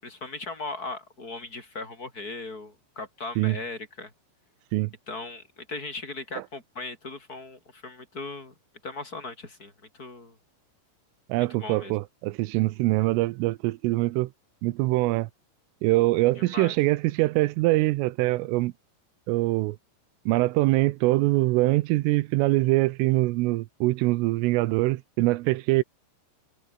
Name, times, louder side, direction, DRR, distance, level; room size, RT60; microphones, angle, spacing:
voice 1, 0.0-4.1 5.1-8.5 8.8-10.4 11.5-12.0 16.4-16.8, left 3 dB, 20° left, 6.1 m, -38 dB
voice 2, 11.3-14.3 14.6-15.3 15.8-18.7 19.3-19.8 20.3-25.8, right 20 dB, 85° right, 3.4 m, -23 dB
omnidirectional pair, 5.7 m